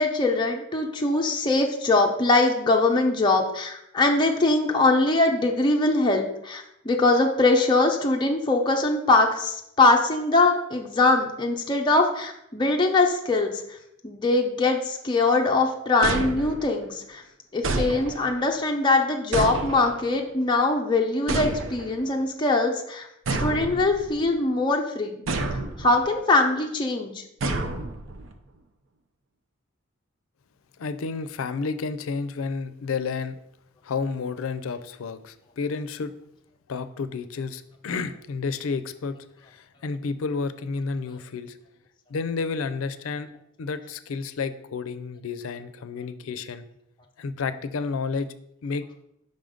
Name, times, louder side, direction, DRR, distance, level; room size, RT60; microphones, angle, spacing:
voice 1, 0.0-13.5 14.0-17.2 17.5-23.1 23.4-25.2 25.8-27.2, left 2 dB, 20° left, 1 dB, 0.5 m, -22 dB
sound 1, 16.0-16.9 17.6-18.5 19.3-20.2 21.3-22.1 23.3-24.3 25.3-26.0 27.4-28.3, right 2 dB, 70° right, 0.6 m, -29 dB
voice 2, 30.8-33.4 33.8-36.1 36.7-41.6 42.1-43.3 43.6-46.6 47.2-48.3 48.6-48.9, left 4 dB, 85° left, 12 dB, 0.4 m, -31 dB
5.4 x 3.8 x 5.0 m, 0.79 s
head